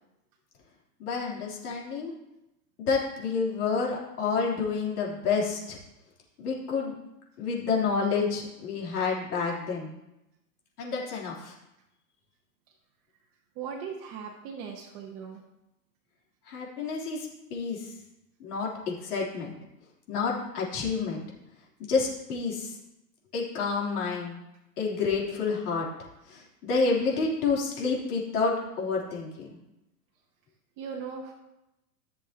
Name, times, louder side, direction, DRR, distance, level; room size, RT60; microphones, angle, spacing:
voice 1, 1.0-2.2 2.8-5.8 6.4-6.9 7.4-9.9 10.8-11.5 16.5-17.8 18.4-19.5 20.1-21.2 21.9-22.7 23.3-24.4 24.8-25.9 26.3-29.5, left 4 dB, 65° left, -3 dB, 3.6 m, -29 dB
voice 2, 13.5-15.4 30.8-31.3, right 6 dB, 30° right, -1 dB, 1.2 m, -38 dB
14.5 x 6.7 x 3.0 m, 0.91 s
hypercardioid pair, 145°, 49 cm